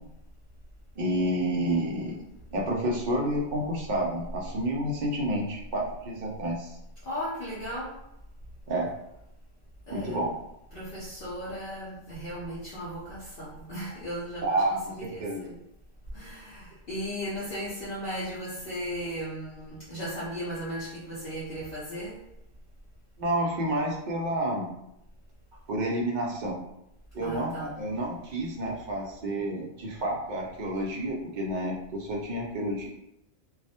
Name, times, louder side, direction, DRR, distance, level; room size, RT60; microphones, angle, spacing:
voice 1, 1.0-2.2 2.5-6.8 8.7-8.9 9.9-10.3 14.4-15.4 23.2-24.7 25.7-26.6 27.1-32.9, right 1 dB, 65° right, -1 dB, 0.4 m, -29 dB
voice 2, 7.1-7.9 9.9-10.2 10.7-15.6 16.1-22.2 27.2-27.7, equal, 55° left, -8 dB, 0.7 m, -36 dB
2.3 x 2.0 x 2.7 m, 0.85 s
omnidirectional pair, 1.3 m